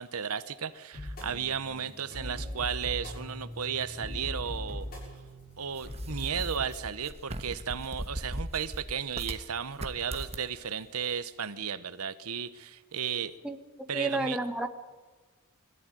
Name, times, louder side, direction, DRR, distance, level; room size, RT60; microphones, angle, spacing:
voice 1, 0.0-4.9 5.6-13.3 13.9-14.4, right 7 dB, 90° right, 13 dB, 1.0 m, -34 dB
sound 1, 0.9-6.7, equal, 45° left, 7.1 m, -40 dB
sound 2, 5.7-9.4 9.7-10.5, right 1 dB, 30° right, 1.3 m, -39 dB
voice 2, 13.9-14.7, right 2 dB, 5° right, 7 dB, 1.3 m, -30 dB
21.5 x 14.5 x 9.2 m, 1.3 s
head